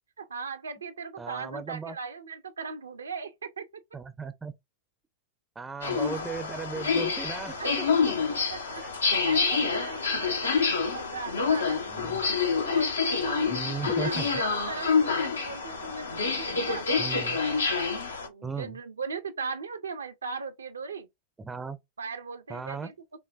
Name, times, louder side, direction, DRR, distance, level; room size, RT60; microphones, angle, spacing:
voice 1, 0.2-3.7 7.6-7.7 8.5-8.8 9.1-11.9 12.4-13.5 13.9-16.9 17.3-17.9 18.2-21.1 22.0-22.9, right 5 dB, 70° right, 0.6 m, -38 dB
voice 2, 1.2-1.9 3.9-4.5 5.6-8.1 11.9-12.2 13.5-14.3 17.0-17.4 18.4-18.8 21.4-21.8 22.5-22.9, right 5 dB, 15° right, 0.5 m, -36 dB
sound 1, 5.8-18.3, left 5 dB, 75° left, 0.8 m, -27 dB
sound 2, 9.3-17.0, left 4 dB, 90° left, 2.2 m, -48 dB
5.6 x 2.1 x 2.4 m
figure-of-eight pair, 90°, 0 cm